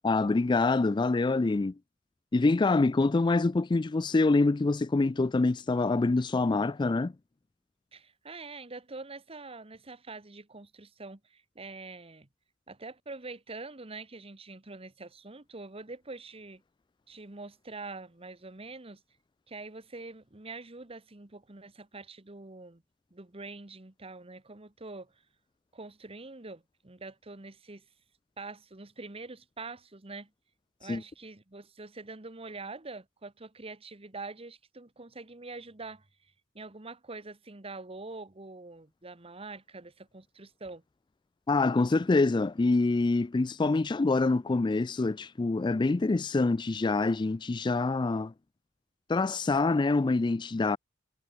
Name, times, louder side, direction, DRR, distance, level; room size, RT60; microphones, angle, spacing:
voice 1, 0.0-1.7 2.3-7.1 30.9-31.0 41.5-48.3 49.1-50.8, left 3 dB, 25° left, 0.4 m, -25 dB
voice 2, 7.9-12.3 12.7-16.6 17.1-19.0 19.5-22.8 23.1-25.2 25.7-27.8 28.4-30.3 30.8-40.8, right 3 dB, 30° right, 1.3 m, -45 dB
head